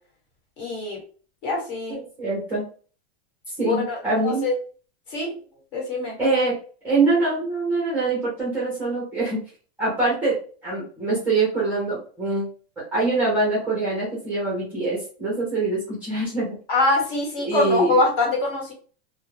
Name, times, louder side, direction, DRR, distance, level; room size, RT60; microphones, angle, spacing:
voice 1, 0.6-1.0 1.4-2.0 3.6-4.0 4.2-4.5 5.1-5.3 5.7-6.2 16.7-18.7, left 2 dB, 50° left, -1 dB, 1.3 m, -23 dB
voice 2, 1.9-2.7 3.6-4.5 6.2-6.6 6.8-9.4 9.8-12.5 12.8-16.6 17.5-18.1, right 3 dB, 5° right, -6 dB, 0.5 m, -24 dB
2.3 x 2.1 x 3.1 m, 0.41 s
supercardioid pair, 170°, 33 cm